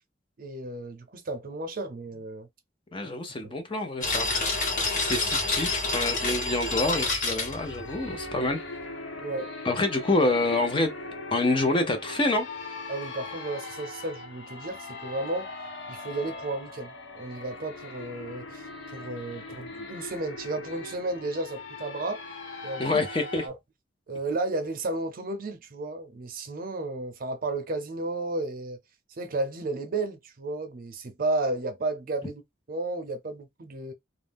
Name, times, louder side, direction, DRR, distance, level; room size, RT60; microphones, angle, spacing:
voice 1, 0.4-2.5 3.4-3.5 9.2-9.5 12.9-15.5 15.9-22.2 22.6-23.0 23.4-23.6 24.1-28.8 29.2-32.4 32.7-33.9, right 2 dB, 50° right, 0.6 m, -33 dB
voice 2, 2.9-4.3 4.9-8.6 9.6-10.9 11.3-12.5 22.8-23.5, left 2 dB, 30° left, 0.6 m, -27 dB
sound 1, 4.0-8.4, left 3 dB, 50° left, 1.3 m, -28 dB
sound 2, 7.3-23.5, left 2 dB, 75° left, 0.7 m, -40 dB
2.5 x 2.0 x 3.4 m
head